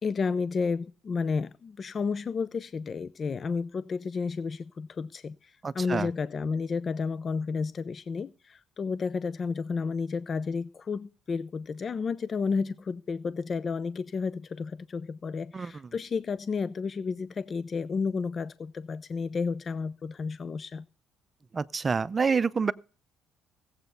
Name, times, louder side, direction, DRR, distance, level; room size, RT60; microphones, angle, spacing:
voice 1, 0.0-20.9, left 5 dB, 40° left, 0.5 m, -31 dB
voice 2, 5.6-6.1 15.5-15.9 21.5-22.7, right 5 dB, 30° right, 0.6 m, -28 dB
15.0 x 8.0 x 5.4 m
supercardioid pair, 75°, 0 cm